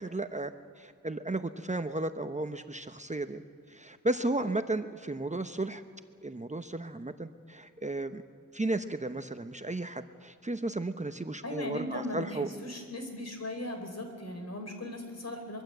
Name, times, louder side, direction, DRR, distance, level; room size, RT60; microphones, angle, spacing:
voice 1, 0.0-3.4 3.7-5.8 6.2-8.2 8.5-12.5, right 2 dB, 20° right, 8 dB, 0.8 m, -34 dB
voice 2, 11.4-15.6, left 1 dB, 50° left, 5 dB, 4.3 m, -38 dB
24.0 x 22.0 x 7.9 m, 2.3 s
wide cardioid pair, 95°, 32 cm